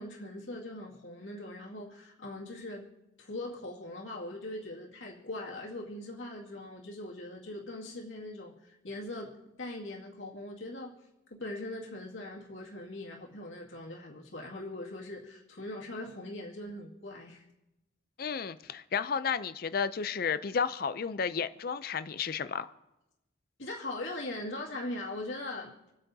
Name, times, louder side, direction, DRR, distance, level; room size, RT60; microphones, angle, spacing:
voice 1, 0.0-2.9 3.2-10.9 11.3-17.4 23.6-25.8, left 1 dB, 80° left, -3 dB, 2.2 m, -41 dB
voice 2, 18.2-22.7, left 6 dB, 50° left, 13 dB, 0.4 m, -32 dB
27.0 x 9.2 x 2.8 m, 0.95 s
head